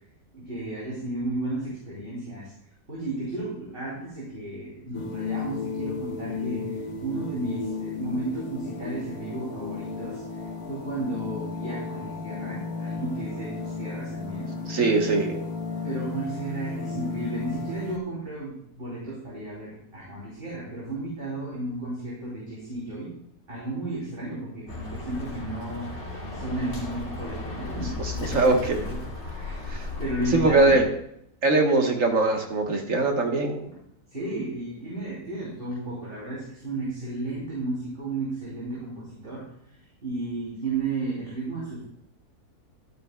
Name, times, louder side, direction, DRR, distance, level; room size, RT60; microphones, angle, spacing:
voice 1, 0.3-2.5 2.9-10.2 10.7-15.2 15.8-23.1 23.5-29.0 29.3-29.6 30.0-30.8 33.6-33.8 34.1-39.5 40.0-41.8, right 2 dB, 35° right, -7 dB, 3.0 m, -33 dB
sound 1, 4.9-18.0, left 4 dB, 75° left, 1.6 m, -34 dB
voice 2, 14.7-15.4 28.0-28.8 29.7-29.8 30.3-30.8 31.4-33.6, right 3 dB, 60° right, 3 dB, 1.5 m, -22 dB
Bird, 24.7-30.8, left 3 dB, 45° left, 2.5 m, -35 dB
11.5 x 9.4 x 2.2 m, 0.72 s
omnidirectional pair, 1.6 m